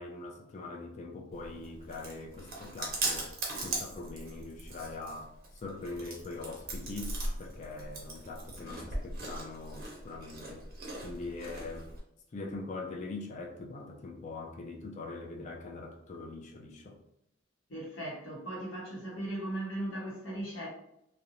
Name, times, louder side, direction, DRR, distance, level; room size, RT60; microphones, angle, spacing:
voice 1, 0.0-3.3 3.6-5.3 5.6-7.1 7.4-10.6 11.0-11.9 12.3-16.9, left 3 dB, 35° left, 2 dB, 0.3 m, -42 dB
Chewing mastication, 1.3-12.0, right 2 dB, 50° right, 0.7 m, -39 dB
voice 2, 17.7-20.7, right 1 dB, 70° left, -4 dB, 0.8 m, -38 dB
2.4 x 2.0 x 2.8 m, 0.78 s
head